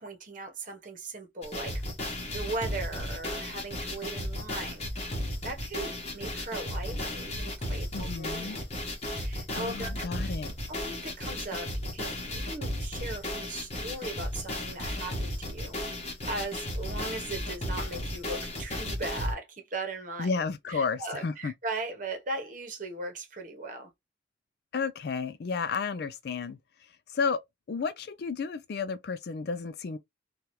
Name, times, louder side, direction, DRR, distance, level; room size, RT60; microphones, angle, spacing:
voice 1, 0.0-1.8 2.3-5.1 5.4-8.7 9.0-10.1 10.7-15.8 16.3-20.3 20.7-23.9, right 2 dB, 45° right, 1.0 m, -38 dB
sound 1, 1.4-19.3, left 1 dB, 35° left, 1.1 m, -34 dB
voice 2, 7.9-8.6 9.5-10.5 20.2-21.5 24.7-27.4 27.7-30.0, left 5 dB, 60° left, 0.4 m, -32 dB
2.8 x 2.4 x 3.0 m
head